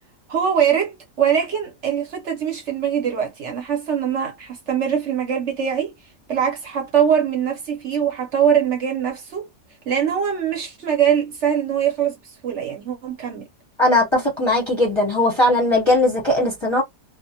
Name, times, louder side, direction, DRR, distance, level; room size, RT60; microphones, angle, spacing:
voice 1, 0.3-5.9 6.3-9.5 9.9-13.5, right 8 dB, 60° right, 0.9 m, -22 dB
voice 2, 13.8-16.8, left 1 dB, 25° left, 0.8 m, -18 dB
2.4 x 2.1 x 2.7 m
omnidirectional pair, 1.5 m